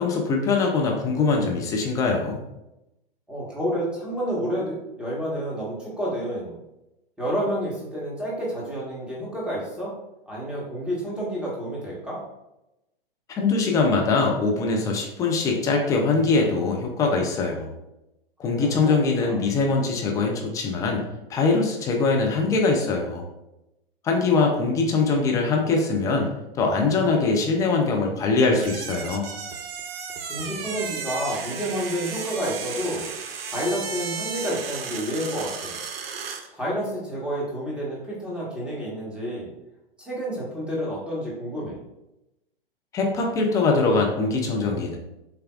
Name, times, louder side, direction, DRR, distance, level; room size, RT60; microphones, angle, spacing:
voice 1, 0.0-2.4 13.3-17.7 18.4-21.0 21.3-23.2 24.0-29.3 42.9-45.0, left 3 dB, 10° left, 0 dB, 0.3 m, -22 dB
voice 2, 3.3-6.6 7.2-9.9 10.3-12.2 18.6-19.4 30.3-33.1 33.5-35.7 36.5-39.5 40.0-41.8, equal, 5° right, -6 dB, 1.2 m, -29 dB
sound 1, 28.5-36.5, right 6 dB, 75° right, 0.6 m, -34 dB
6.7 x 2.2 x 2.3 m, 0.92 s
hypercardioid pair, 120°, 30 cm